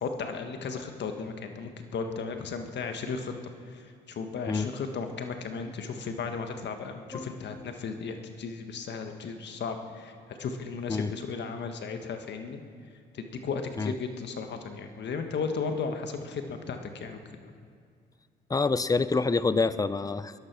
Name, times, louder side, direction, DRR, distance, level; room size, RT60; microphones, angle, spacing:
voice 1, 0.0-3.3 3.7-12.6 13.1-17.5, left 5 dB, 60° left, 6 dB, 1.6 m, -35 dB
voice 2, 18.5-20.3, left 4 dB, 20° left, 15 dB, 0.6 m, -27 dB
19.0 x 11.5 x 6.2 m, 2.3 s
cardioid pair, 90°, 20 cm